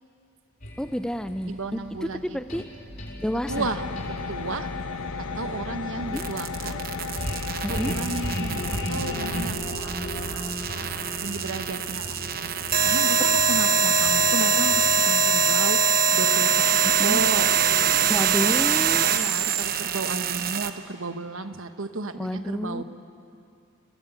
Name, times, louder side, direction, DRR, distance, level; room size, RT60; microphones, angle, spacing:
sound 1, 0.6-15.1, equal, 40° left, 5.1 m, -37 dB
voice 1, 0.8-1.8 2.1-2.7 3.2-3.7 6.1-6.3 7.6-8.0 16.8-17.2 18.1-19.1 22.2-22.8, equal, 5° left, 10 dB, 0.7 m, -29 dB
voice 2, 1.4-2.6 3.5-4.7 5.2-6.8 7.7-10.9 11.2-17.5 18.0-18.6 19.1-22.8, right 3 dB, 70° right, 9 dB, 1.2 m, -34 dB
sound 2, 3.5-9.5, left 5 dB, 85° left, 0.9 m, -34 dB
sound 3, 6.2-20.7, right 6 dB, 45° right, 1.0 m, -23 dB
29.0 x 17.0 x 9.2 m, 2.5 s
head